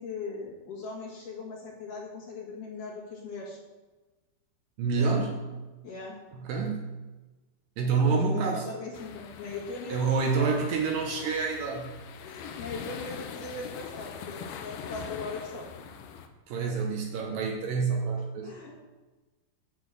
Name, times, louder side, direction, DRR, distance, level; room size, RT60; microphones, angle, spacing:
voice 1, 0.0-3.6 4.9-5.2 5.8-6.1 8.1-10.6 12.2-15.8 18.4-18.7, left 3 dB, 60° left, -4 dB, 3.0 m, -39 dB
voice 2, 4.8-5.4 6.3-6.9 7.8-8.7 9.9-11.9 16.5-18.5, right 4 dB, 75° right, 1 dB, 2.4 m, -27 dB
sound 1, 8.9-16.3, left 7 dB, 75° left, 2.1 m, -43 dB
9.1 x 4.2 x 7.4 m, 1.2 s
omnidirectional pair, 4.6 m